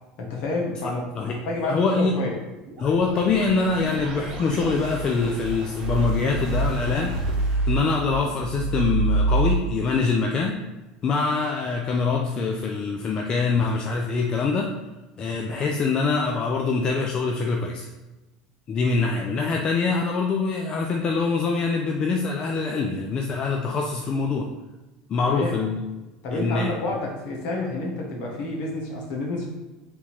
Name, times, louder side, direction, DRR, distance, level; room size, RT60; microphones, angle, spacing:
voice 1, 0.2-2.4 25.2-25.6 26.2-29.5, left 2 dB, 65° left, -1 dB, 1.3 m, -29 dB
voice 2, 0.8-1.4 1.6-2.1 2.8-10.6 11.0-14.7 15.2-17.9 18.7-24.5 25.1-25.8 26.3-26.7, left 4 dB, 40° left, 1 dB, 0.5 m, -24 dB
sound 1, 2.7-9.6, right 2 dB, 50° right, 0.9 m, -27 dB
3.7 x 2.8 x 4.2 m, 1.1 s
supercardioid pair, 95°, 2 cm